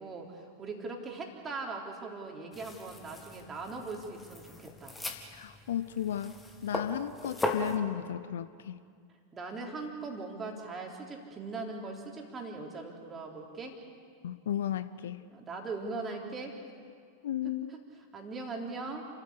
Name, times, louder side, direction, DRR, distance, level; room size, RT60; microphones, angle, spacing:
voice 1, 0.0-5.0 9.3-13.8 15.3-16.6 17.4-17.5 18.1-19.1, right 3 dB, 20° right, 1 dB, 3.6 m, -40 dB
sound 1, 2.5-7.8, left 2 dB, 10° left, 2.2 m, -38 dB
voice 2, 5.3-8.8 14.2-15.3 17.2-17.7, left 10 dB, 60° left, 14 dB, 0.7 m, -34 dB
29.5 x 14.5 x 8.5 m, 2.1 s
figure-of-eight pair, 90°, 0 cm